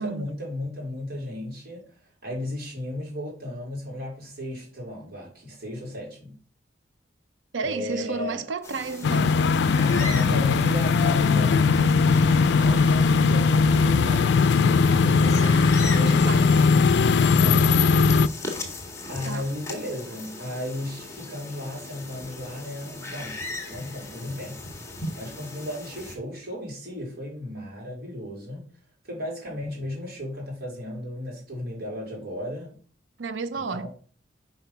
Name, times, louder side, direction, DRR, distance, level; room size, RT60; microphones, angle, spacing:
voice 1, 0.0-2.0 2.2-6.3 7.6-8.4 9.7-16.6 17.3-17.6 19.1-24.6 25.1-28.6 29.0-32.7 33.5-33.9, left 1 dB, 60° right, 3.7 m, -35 dB
voice 2, 7.5-9.4 14.5-14.7 15.8-16.6 17.3-17.4 19.2-19.5 33.2-33.9, right 4 dB, 85° right, 0.6 m, -32 dB
sound 1, 8.6-26.2, left 2 dB, 15° left, 1.6 m, -38 dB
sound 2, 9.0-18.3, left 4 dB, 70° left, 0.4 m, -19 dB
5.9 x 5.0 x 5.7 m
head